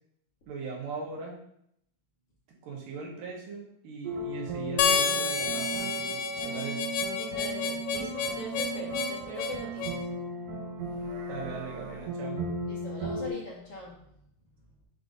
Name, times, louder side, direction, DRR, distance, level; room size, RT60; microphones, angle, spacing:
voice 1, 0.5-1.4 2.6-6.9 11.3-12.4, right 4 dB, 85° right, -1 dB, 2.8 m, -39 dB
sound 1, 4.0-13.3, right 2 dB, 70° right, 1.7 m, -37 dB
Harmonica, 4.8-10.0, left 5 dB, 80° left, 1.9 m, -29 dB
voice 2, 7.2-10.1 12.7-14.0, equal, 55° left, -4 dB, 1.9 m, -41 dB
7.6 x 2.6 x 5.1 m, 0.73 s
omnidirectional pair, 3.7 m